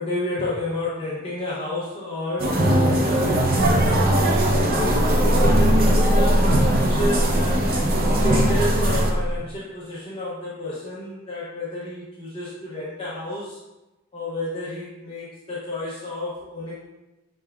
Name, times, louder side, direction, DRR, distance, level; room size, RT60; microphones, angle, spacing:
voice 1, 0.0-3.6 4.2-7.4 8.0-13.6 14.1-16.7, left 1 dB, 25° left, -8 dB, 0.6 m, -30 dB
sound 1, 2.4-9.1, right 1 dB, 40° right, 0.5 m, -21 dB
sound 2, 3.6-9.4, equal, 20° right, 1.0 m, -22 dB
5.8 x 3.4 x 2.3 m, 1.0 s
head